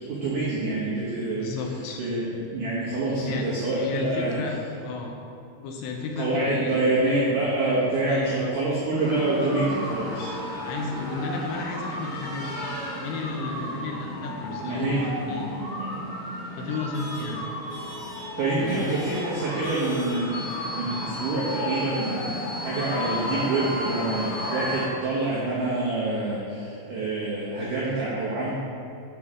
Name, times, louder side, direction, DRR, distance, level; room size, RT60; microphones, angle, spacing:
voice 1, 0.0-1.4 2.0-4.4 6.2-10.3 14.6-15.1 15.8-16.0 18.4-20.5 20.7-28.5, right 2 dB, 85° right, -7 dB, 1.8 m, -26 dB
voice 2, 1.3-2.0 3.2-3.4 3.7-5.2 5.6-7.0 8.1-8.5 10.6-12.7 13.0-15.5 16.6-17.5 18.6-18.9, left 3 dB, 80° left, 1 dB, 2.8 m, -33 dB
sound 1, 8.9-24.9, left 1 dB, 50° left, 2.0 m, -33 dB
9.4 x 5.4 x 3.7 m, 2.7 s
omnidirectional pair, 5.5 m